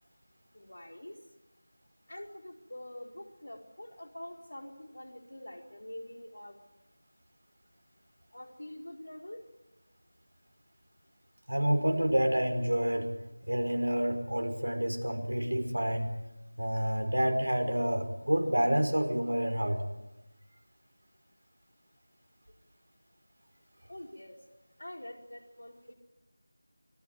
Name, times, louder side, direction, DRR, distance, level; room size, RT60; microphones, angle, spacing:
voice 1, 0.5-1.2 2.1-6.6 8.3-9.4 23.9-24.4 24.8-25.9, left 1 dB, 70° left, 3 dB, 4.4 m, -45 dB
voice 2, 11.5-13.1 13.5-16.1 16.6-19.8, equal, 85° right, 5 dB, 5.1 m, -28 dB
25.0 x 18.0 x 9.5 m, 0.97 s
figure-of-eight pair, 170°, 0 cm